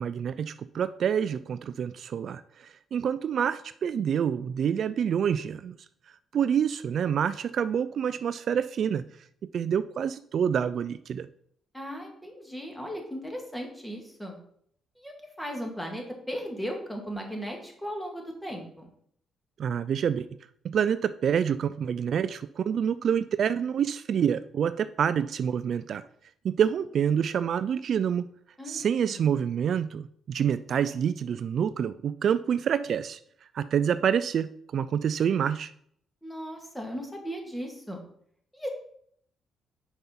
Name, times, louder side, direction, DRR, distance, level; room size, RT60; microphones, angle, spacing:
voice 1, 0.0-5.8 6.3-9.0 9.5-11.3 19.6-20.3 20.6-26.0 26.4-28.3 28.7-33.2 33.5-35.7, right 8 dB, 60° right, 14 dB, 0.3 m, -27 dB
voice 2, 11.7-14.4 15.0-18.9 28.6-28.9 36.2-38.0 38.5-38.7, equal, 5° left, 1 dB, 2.1 m, -37 dB
5.7 x 5.4 x 5.8 m, 0.65 s
cardioid pair, 90°, 0 cm